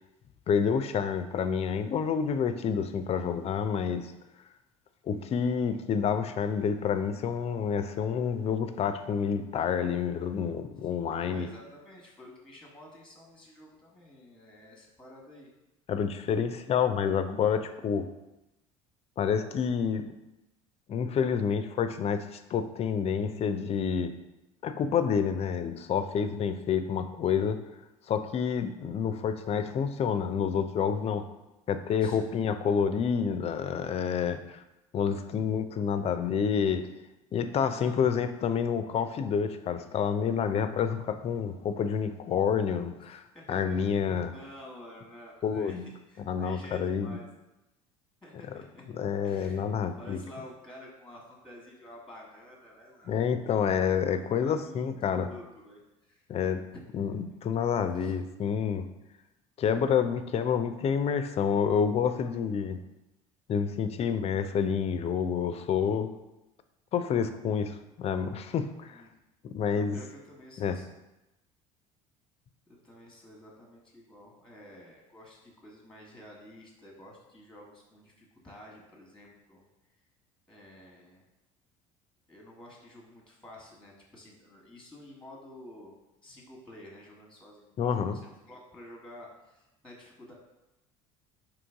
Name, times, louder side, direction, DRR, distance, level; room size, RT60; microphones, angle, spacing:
voice 1, 0.5-4.1 5.1-11.5 15.9-18.1 19.2-20.1 20.9-24.1 24.6-27.6 28.1-31.3 31.7-34.6 34.9-36.9 37.3-43.2 43.5-44.3 45.4-45.9 46.3-47.2 48.9-50.2 53.1-55.3 56.3-56.6 56.9-58.9 59.6-62.8 63.5-66.1 66.9-69.0 69.4-70.0 70.6-70.8 87.8-88.2, left 7 dB, 40° left, 9 dB, 0.4 m, -28 dB
voice 2, 10.8-15.5 32.0-32.3 35.1-35.2 37.6-38.1 42.9-43.0 43.3-45.8 46.1-47.3 48.2-48.8 49.2-49.6 50.0-53.6 54.1-56.2 56.7-57.2 57.5-58.1 68.9-69.2 69.7-70.9 72.7-79.7 80.5-81.3 82.3-85.9 86.2-90.3, left 1 dB, 5° left, -2 dB, 1.1 m, -50 dB
3.8 x 3.0 x 3.5 m, 0.95 s
hypercardioid pair, 70°, 17 cm